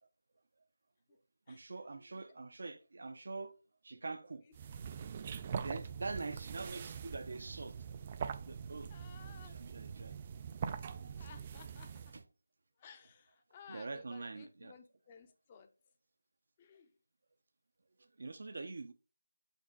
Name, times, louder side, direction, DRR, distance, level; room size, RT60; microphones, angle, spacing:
voice 1, 1.5-3.5 3.8-4.4 5.6-7.7 8.4-8.9 9.2-10.1 11.2-11.3 12.1-12.2 13.7-14.7 18.2-18.9, right 3 dB, 55° right, 0.7 m, -44 dB
sound 1, 4.5-12.2, right 7 dB, 25° right, 0.3 m, -43 dB
voice 2, 8.9-9.6 11.2-12.1 12.8-15.7 16.6-16.9, left 6 dB, 20° left, 0.7 m, -57 dB
5.3 x 5.2 x 3.8 m
figure-of-eight pair, 165°, 0 cm